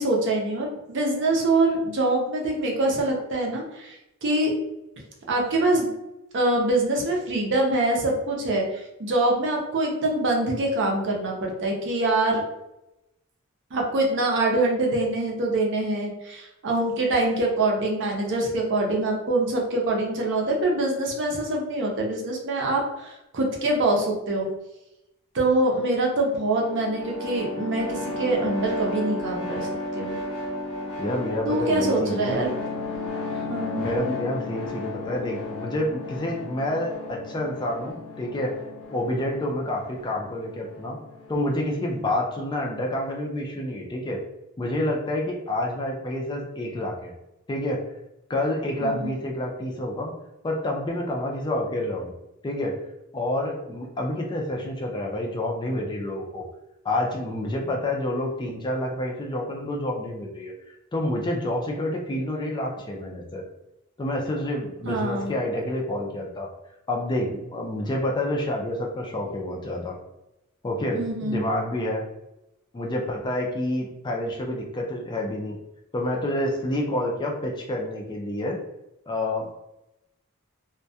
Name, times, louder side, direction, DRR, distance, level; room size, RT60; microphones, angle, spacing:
voice 1, 0.0-3.9 4.2-4.5 5.3-5.9 6.3-12.4 13.7-24.5 25.3-30.2 31.5-32.6 33.5-33.9 48.8-49.1 64.8-65.3 70.9-71.4, right 2 dB, 55° right, 0 dB, 0.6 m, -24 dB
sound 1, 26.4-41.9, left 2 dB, 85° left, 0.7 m, -34 dB
voice 2, 31.0-32.4 33.8-38.6 38.9-41.0 41.3-44.2 44.6-47.1 47.5-47.8 48.3-50.1 50.4-52.1 52.4-52.8 53.1-56.5 56.8-60.5 60.9-63.4 64.0-66.5 66.9-70.0 70.6-72.0 72.7-75.6 75.9-78.6 79.1-79.5, left 1 dB, 20° left, 0 dB, 0.3 m, -28 dB
2.2 x 2.1 x 2.7 m, 0.90 s
head